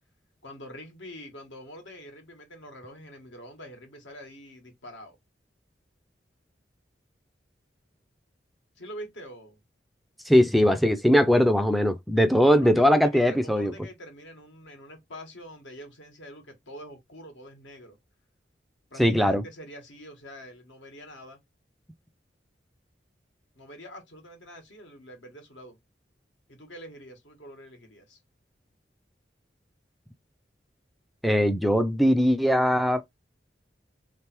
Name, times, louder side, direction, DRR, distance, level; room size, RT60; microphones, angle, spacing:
voice 1, 0.4-5.2 8.8-9.6 12.5-18.0 18.9-21.4 23.5-25.8 26.5-28.2, equal, 85° left, 1.8 m, -45 dB
voice 2, 10.2-13.7 19.0-19.4 31.2-33.0, equal, ahead, 0.3 m, -20 dB
3.3 x 3.2 x 4.4 m
head